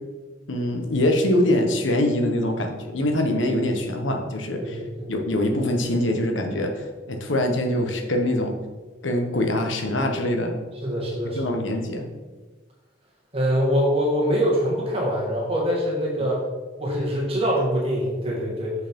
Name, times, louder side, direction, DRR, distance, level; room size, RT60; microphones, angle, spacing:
voice 1, 0.5-4.8 5.1-8.5 9.0-10.5 11.3-12.1, left 1 dB, 85° left, 3 dB, 1.2 m, -23 dB
voice 2, 4.6-5.1 10.8-11.5 13.3-16.4 16.8-18.7, equal, 30° right, -4 dB, 1.8 m, -24 dB
6.5 x 5.7 x 5.3 m, 1.3 s
head